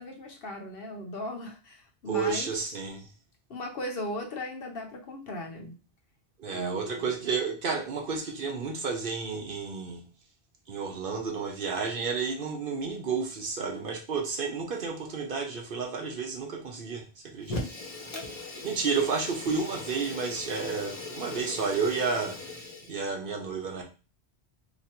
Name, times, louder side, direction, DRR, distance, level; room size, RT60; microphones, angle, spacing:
voice 1, 0.0-2.8 3.5-5.8 6.5-7.2 18.1-18.2, left 1 dB, 60° left, 2 dB, 0.9 m, -38 dB
voice 2, 2.1-3.1 6.4-10.0 10.7-17.0 17.3-17.6 18.6-22.4 22.9-23.8, right 5 dB, 60° right, 2 dB, 0.9 m, -31 dB
Fire, 17.4-23.0, left 2 dB, 35° left, 0.9 m, -39 dB
2.9 x 2.5 x 4.2 m, 0.33 s
omnidirectional pair, 1.1 m